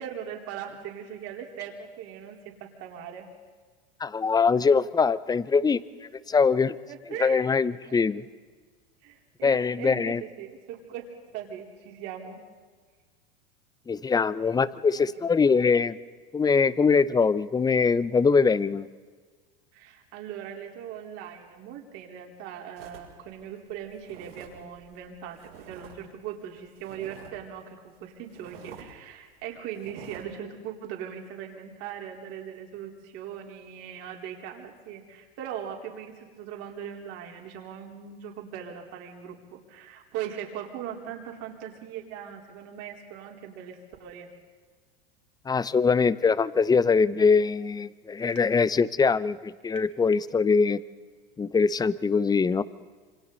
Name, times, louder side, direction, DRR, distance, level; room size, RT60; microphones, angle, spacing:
voice 1, 0.0-3.3 6.9-7.4 7.8-8.0 9.0-11.1 11.3-12.4 14.9-15.1 19.7-44.3, right 9 dB, 55° right, 1 dB, 4.2 m, -40 dB
voice 2, 4.0-5.8 6.3-6.8 7.2-8.2 9.4-10.2 13.9-16.0 16.3-18.9 45.5-50.8 51.4-52.6, left 5 dB, 15° left, 17 dB, 0.7 m, -22 dB
sound 1, 22.8-26.0 26.2-27.5 27.9-28.0 28.3-28.9 29.3-29.4 29.7-30.2, right 7 dB, 80° right, 6.6 m, -48 dB
27.0 x 26.0 x 4.1 m, 1.5 s
hypercardioid pair, 95°, 29 cm